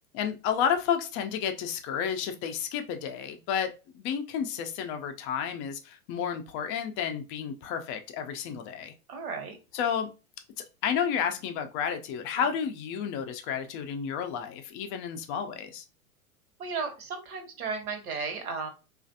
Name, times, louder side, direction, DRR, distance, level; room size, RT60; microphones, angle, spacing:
voice 1, 0.1-8.9 9.7-10.1 10.8-15.8, left 8 dB, 30° left, 6 dB, 0.4 m, -31 dB
voice 2, 9.1-9.6 16.6-18.7, right 5 dB, 75° right, 4 dB, 1.1 m, -34 dB
3.2 x 2.5 x 2.6 m, 0.30 s
hypercardioid pair, 110°, 44 cm